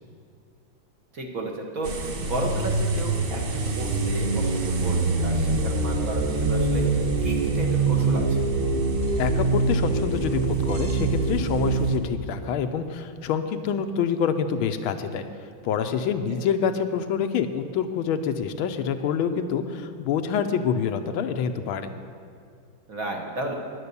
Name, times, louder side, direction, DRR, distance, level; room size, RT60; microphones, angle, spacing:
voice 1, 1.1-8.5 16.3-16.4 22.9-23.5, right 2 dB, 45° right, 1 dB, 1.4 m, -33 dB
sound 1, 1.8-12.0, right 3 dB, 70° right, 0.5 m, -24 dB
voice 2, 9.2-15.3 15.6-21.9, left 7 dB, 85° left, 8 dB, 1.5 m, -26 dB
10.0 x 9.6 x 6.8 m, 2.3 s
omnidirectional pair, 2.2 m